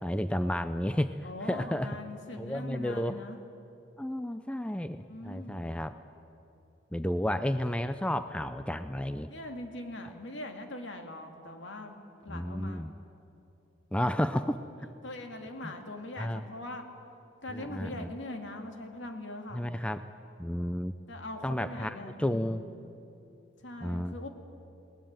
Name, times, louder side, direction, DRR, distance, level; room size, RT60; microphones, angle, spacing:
voice 1, 0.0-1.1 1.4-1.9 2.4-3.2 4.0-6.0 6.9-9.3 12.3-12.9 13.9-14.6 16.2-16.4 17.5-18.1 19.5-20.0 20.4-20.9 21.4-22.6 23.8-24.1, equal, 5° left, 10 dB, 0.4 m, -32 dB
voice 2, 1.2-3.4 5.1-5.6 9.3-12.0 12.2-12.8 15.0-16.9 17.4-19.6 21.1-22.7 23.6-24.3, left 1 dB, 70° left, 4 dB, 2.3 m, -41 dB
20.5 x 19.0 x 8.9 m, 2.8 s
head